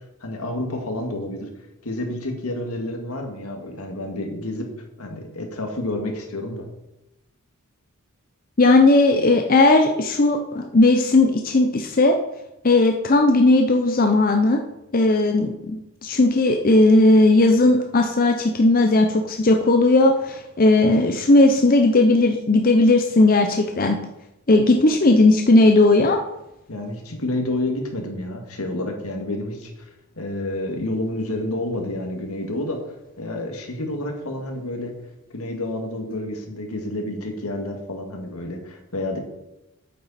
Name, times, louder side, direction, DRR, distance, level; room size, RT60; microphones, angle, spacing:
voice 1, 0.2-1.5 1.8-4.7 5.0-6.7 26.7-29.7 30.2-32.8 33.2-34.9 35.3-39.2, left 1 dB, 80° left, 3 dB, 2.0 m, -29 dB
voice 2, 8.6-12.1 12.6-14.6 14.9-24.0 24.5-26.2, left 2 dB, 40° left, 4 dB, 0.6 m, -16 dB
8.8 x 8.4 x 4.2 m, 0.91 s
head